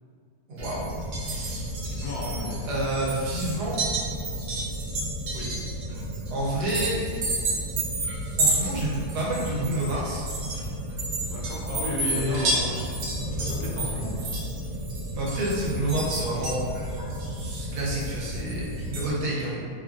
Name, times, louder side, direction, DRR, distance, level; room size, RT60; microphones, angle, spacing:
voice 1, 0.5-0.8 1.2-1.7 2.6-4.1 6.3-7.0 8.4-10.3 12.0-12.6 15.1-19.7, right 1 dB, 85° right, -5 dB, 1.3 m, -29 dB
sound 1, 0.6-19.1, right 1 dB, 65° right, 0.8 m, -30 dB
voice 2, 1.8-2.7 5.3-5.5 11.3-12.8 13.3-14.3, left 2 dB, 75° left, -3 dB, 1.1 m, -34 dB
3.0 x 2.3 x 2.4 m, 2.2 s
omnidirectional pair, 1.7 m